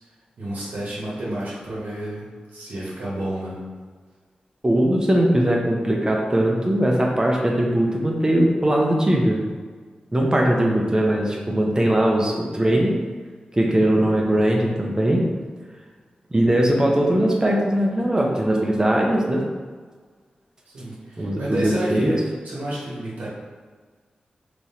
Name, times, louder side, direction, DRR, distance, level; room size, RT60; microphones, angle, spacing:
voice 1, 0.4-3.6 20.7-23.3, right 1 dB, 85° right, -7 dB, 1.1 m, -30 dB
voice 2, 4.6-9.4 10.1-13.0 13.5-15.3 16.3-19.4 21.2-22.1, right 1 dB, 25° right, -1 dB, 0.7 m, -20 dB
3.6 x 3.0 x 2.8 m, 1.5 s
cardioid pair, 55°, 3 cm